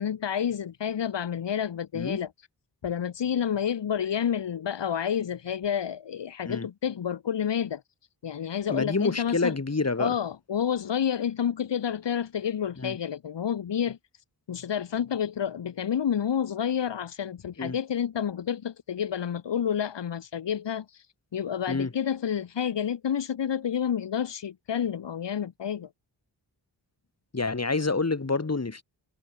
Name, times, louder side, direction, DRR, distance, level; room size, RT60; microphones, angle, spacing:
voice 1, 0.0-2.3 2.8-7.8 8.2-9.6 10.0-14.0 14.5-21.1 21.3-25.9, left 8 dB, 85° left, 1.9 m, -29 dB
voice 2, 8.7-10.2 12.8-13.0 17.6-17.8 21.7-21.9 27.3-28.8, left 3 dB, 35° left, 5.6 m, -28 dB
cardioid pair, 70°, 42 cm